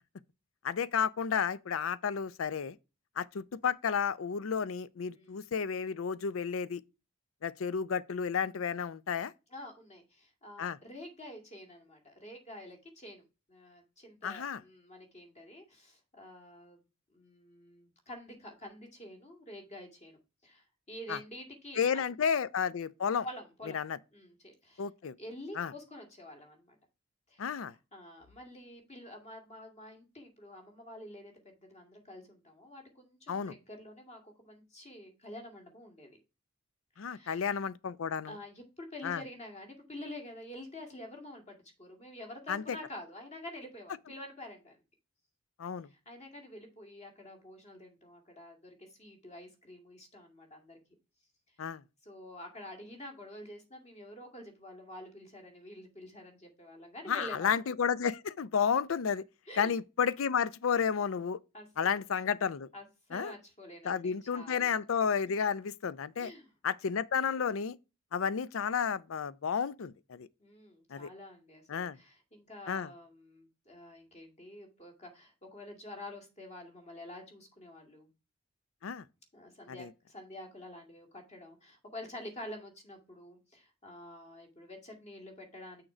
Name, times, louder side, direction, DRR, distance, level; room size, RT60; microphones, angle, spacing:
voice 1, 0.6-2.8 3.2-6.8 7.4-9.3 10.6-10.8 14.2-14.6 21.1-21.2 21.8-23.3 23.7-24.0 24.8-25.1 25.6-25.7 27.4-27.7 33.3-33.6 37.0-38.4 39.0-39.2 42.5-42.8 45.6-45.9 51.6-51.8 57.1-59.2 59.6-61.4 61.8-62.7 63.1-63.3 63.8-66.3 66.6-67.8 68.1-70.3 70.9-71.1 71.7-72.0 72.7-72.9 78.8-79.0 79.7-79.9, left 6 dB, 85° left, 0.5 m, -32 dB
voice 2, 9.5-13.2 13.5-16.8 17.1-22.1 23.2-23.8 24.1-24.9 25.2-26.8 27.3-27.4 27.9-36.2 37.0-37.4 38.2-44.8 45.8-50.8 52.0-57.6 59.5-59.7 61.5-61.9 62.7-64.8 66.2-66.5 70.4-78.1 79.3-85.8, left 1 dB, 35° left, 2.3 m, -48 dB
6.4 x 4.5 x 4.9 m
head